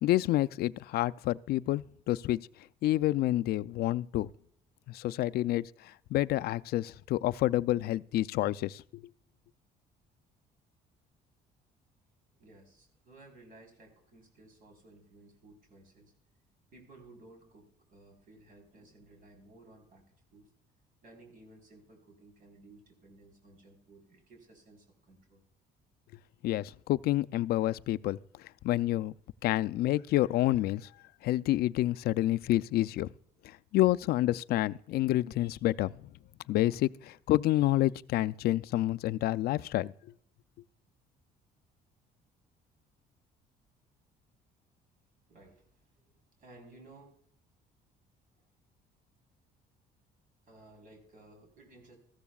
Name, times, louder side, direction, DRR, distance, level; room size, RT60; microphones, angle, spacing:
voice 1, 0.0-2.4 2.8-4.3 4.9-9.0 26.4-28.2 28.6-29.1 29.4-30.9 31.2-33.1 33.4-35.9 36.5-39.9, left 15 dB, 70° left, 0.4 m, -28 dB
voice 2, 12.4-16.1 16.7-20.5 21.0-25.4 45.3-45.9 46.4-47.2 50.5-52.0, right 2 dB, 55° right, 4.0 m, -57 dB
14.5 x 13.5 x 2.3 m
cardioid pair, 110°, 17 cm